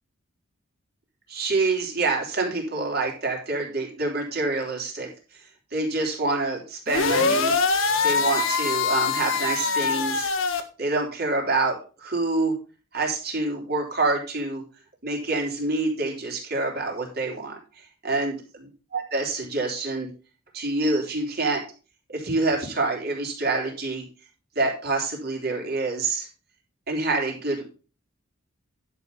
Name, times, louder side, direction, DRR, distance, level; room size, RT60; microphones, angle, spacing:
voice 1, 1.3-5.1 5.7-7.5 8.0-10.3 10.8-12.5 12.9-14.6 15.0-17.6 18.0-18.4 18.9-20.1 20.5-21.6 22.1-24.0 24.6-26.3 26.9-27.6, right 3 dB, 50° right, 0 dB, 3.6 m, -26 dB
sound 1, 6.9-10.6, left 4 dB, 75° left, 1.5 m, -23 dB
11.0 x 6.2 x 5.3 m, 0.34 s
head